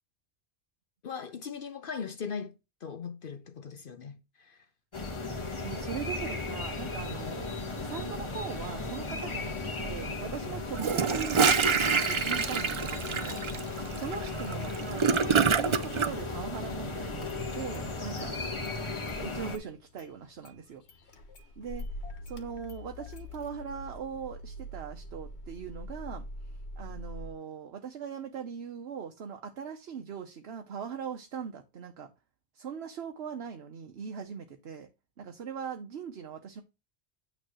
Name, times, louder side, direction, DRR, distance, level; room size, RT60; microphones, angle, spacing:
voice 1, 1.0-4.7, left 6 dB, 60° left, 0.9 m, -39 dB
sound 1, 4.9-19.6, left 3 dB, 30° left, 1.2 m, -36 dB
voice 2, 5.6-7.5 7.8-18.4 19.2-20.8 21.6-21.8 22.2-32.1 32.5-34.9 35.2-36.6, right 7 dB, 75° right, 1.1 m, -40 dB
Gurgling / Toilet flush, 10.7-16.1, right 6 dB, 45° right, 0.4 m, -26 dB
Car / Engine starting, 16.5-16.7 17.1-17.9 18.2-19.2 19.5-27.3, left 1 dB, 85° left, 1.3 m, -44 dB
9.0 x 3.3 x 6.0 m
omnidirectional pair, 1.1 m